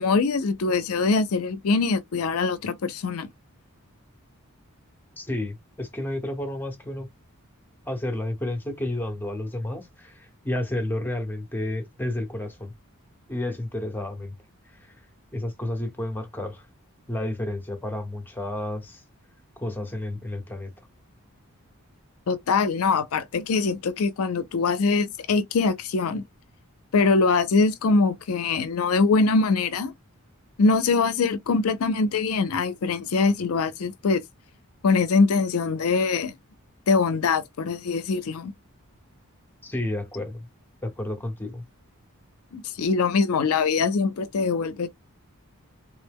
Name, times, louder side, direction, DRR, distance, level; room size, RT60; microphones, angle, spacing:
voice 1, 0.0-3.3 22.3-26.2 26.9-29.9 30.6-34.2 34.8-36.3 36.9-38.5 42.5-44.9, left 4 dB, 70° left, 0.5 m, -23 dB
voice 2, 5.2-7.1 7.9-12.7 13.3-14.3 14.9-15.0 15.3-16.6 17.1-19.0 19.6-20.7 39.6-40.5 40.8-41.6, left 1 dB, 10° left, 0.9 m, -31 dB
3.6 x 2.1 x 3.4 m
head